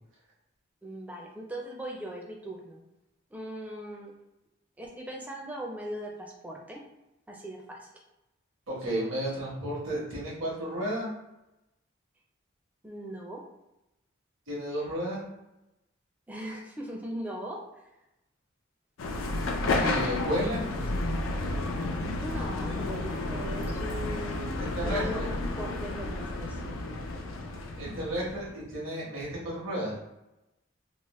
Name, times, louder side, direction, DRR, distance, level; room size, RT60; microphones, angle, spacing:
voice 1, 0.8-2.8 3.3-4.1 4.8-6.8 7.3-7.9 12.8-13.4 16.3-17.6 22.1-24.4 24.8-25.2 25.6-26.8, right 1 dB, 10° right, -1 dB, 0.4 m, -39 dB
voice 2, 8.7-11.1 14.5-15.2 19.8-20.6 24.6-25.3 27.8-30.0, right 1 dB, 80° right, -6 dB, 1.1 m, -32 dB
sound 1, 19.0-28.6, left 2 dB, 85° left, 0.4 m, -31 dB
3.0 x 2.1 x 3.0 m, 0.93 s
head